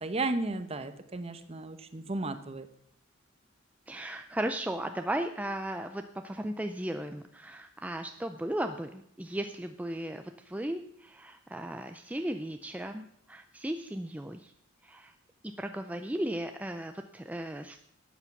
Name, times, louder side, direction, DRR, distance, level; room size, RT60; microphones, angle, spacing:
voice 1, 0.0-2.7, right 2 dB, 30° right, 10 dB, 0.9 m, -34 dB
voice 2, 3.9-14.5 14.8-15.1 15.6-17.8, right 1 dB, 5° right, 7 dB, 0.5 m, -36 dB
12.0 x 8.4 x 5.9 m, 0.73 s
head